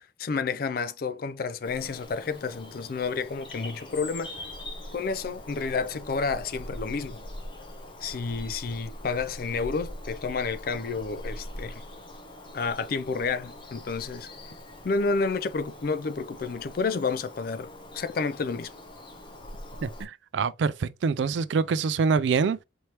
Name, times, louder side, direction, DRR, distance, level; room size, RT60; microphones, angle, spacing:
voice 1, 0.2-4.3 4.9-7.2 8.0-11.8 12.5-14.3 14.8-18.7, left 4 dB, 50° left, 0.4 m, -30 dB
Bird vocalization bird call bird song, 1.6-20.0, left 1 dB, 25° left, 0.9 m, -42 dB
voice 2, 19.8-22.6, right 5 dB, 80° right, 0.4 m, -25 dB
4.4 x 3.2 x 2.9 m
head